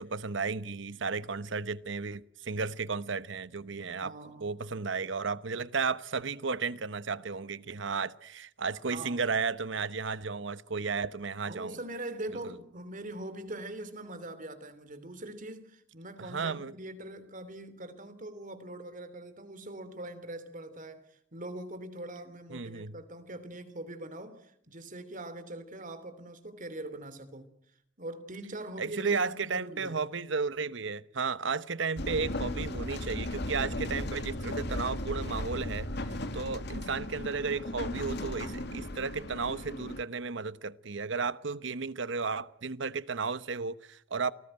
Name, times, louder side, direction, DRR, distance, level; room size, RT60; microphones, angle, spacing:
voice 1, 0.0-4.1 4.4-11.8 12.4-12.5 16.2-16.7 22.5-23.0 28.8-44.3, right 4 dB, 65° right, 1.0 m, -34 dB
voice 2, 4.0-4.6 8.9-9.2 11.5-27.5 28.0-30.0, right 1 dB, 45° right, 3.0 m, -42 dB
sound 1, 32.0-40.0, left 1 dB, 60° left, 2.4 m, -36 dB
29.0 x 19.0 x 8.9 m
head